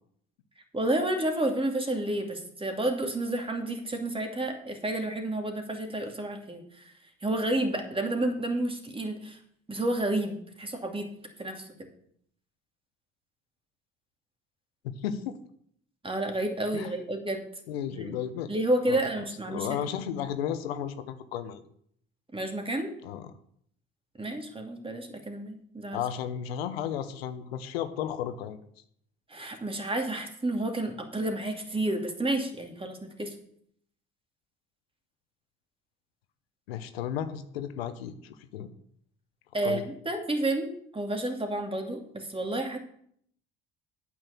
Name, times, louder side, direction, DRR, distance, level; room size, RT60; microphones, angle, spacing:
voice 1, 0.7-6.9 7.2-9.4 9.7-11.1 11.4-11.6 16.0-17.4 17.9-18.1 18.5-19.7 22.3-22.9 24.2-26.0 29.3-33.3 39.5-42.8, right 1 dB, 20° right, 4 dB, 2.5 m, -30 dB
voice 2, 14.8-15.4 16.7-17.0 17.7-18.5 18.9-21.6 23.0-23.3 25.9-28.6 36.7-38.7 39.6-39.8, left 9 dB, 85° left, 10 dB, 0.8 m, -34 dB
8.8 x 6.3 x 7.0 m, 0.66 s
hypercardioid pair, 60°, 30 cm